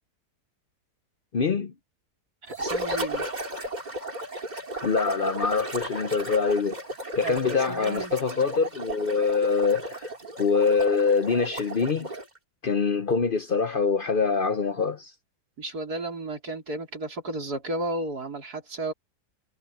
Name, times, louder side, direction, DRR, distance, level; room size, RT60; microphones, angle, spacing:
voice 1, 1.3-1.7 4.8-6.8 7.1-10.1 10.4-12.1 12.6-15.1, left 5 dB, 50° left, 0.6 m, -24 dB
voice 2, 2.4-3.3 7.2-8.1 15.6-18.9, right 2 dB, 65° right, 4.5 m, -33 dB
sound 1, 2.5-12.4, right 1 dB, 25° right, 2.6 m, -34 dB
omnidirectional pair, 1.8 m